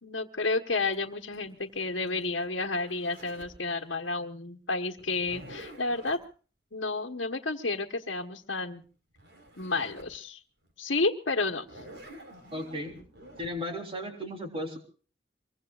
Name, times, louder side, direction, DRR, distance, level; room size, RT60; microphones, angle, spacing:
voice 1, 0.0-6.2 6.7-8.8 9.6-10.4 10.8-11.8, left 3 dB, 75° left, 1 dB, 1.3 m, -31 dB
Zipper (clothing), 0.9-3.6 5.0-6.2 8.8-8.9 9.2-10.2 10.6-10.7 11.5-13.5, right 1 dB, 65° right, 4.5 m, -49 dB
voice 2, 12.5-12.9 13.4-14.8, equal, 30° right, 3 dB, 3.7 m, -35 dB
25.0 x 23.0 x 2.5 m, 0.41 s
head